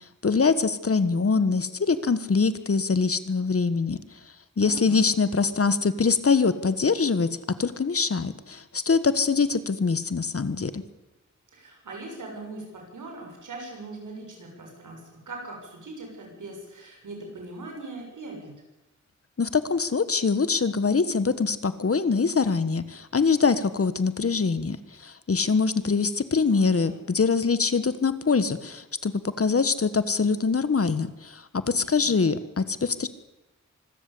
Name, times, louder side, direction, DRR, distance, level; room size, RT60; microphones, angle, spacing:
voice 1, 0.2-4.0 4.6-7.3 7.6-10.8 19.4-33.1, left 4 dB, 50° left, 14 dB, 1.4 m, -24 dB
voice 2, 4.6-5.0 11.5-15.0 15.3-18.5 26.5-27.0 31.7-32.3, right 2 dB, 85° right, 1 dB, 6.9 m, -40 dB
25.0 x 13.5 x 8.5 m, 1.0 s
wide cardioid pair, 75°, 30 cm